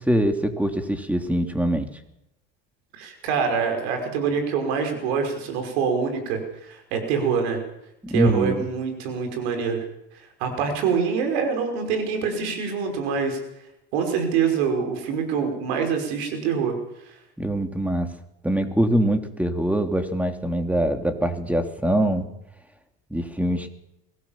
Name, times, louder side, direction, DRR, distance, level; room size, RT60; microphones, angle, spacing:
voice 1, 0.0-1.9 8.0-8.7 17.4-18.1 18.4-22.3 23.1-23.7, right 1 dB, 5° right, 6 dB, 3.1 m, -23 dB
voice 2, 2.9-7.6 8.1-9.8 10.4-13.4 13.9-16.7, right 6 dB, 90° right, 5 dB, 5.7 m, -25 dB
23.0 x 17.5 x 7.4 m, 0.85 s
supercardioid pair, 100°, 31 cm